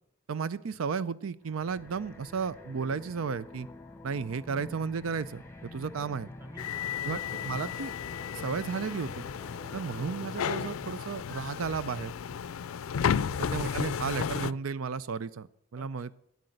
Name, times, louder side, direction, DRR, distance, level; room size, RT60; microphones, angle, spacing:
voice 1, 0.3-3.7 4.0-6.3 7.0-7.9 8.3-9.2 9.7-12.1 13.5-16.1, right 5 dB, 80° right, 16 dB, 0.5 m, -33 dB
sound 1, 1.4-12.0, left 2 dB, 10° left, 1.0 m, -48 dB
voice 2, 5.8-7.1 9.5-9.8 15.7-16.1, equal, 10° right, 8 dB, 1.1 m, -53 dB
sound 2, 6.6-14.5, left 7 dB, 90° left, 0.4 m, -33 dB
12.0 x 9.6 x 7.8 m, 0.73 s
head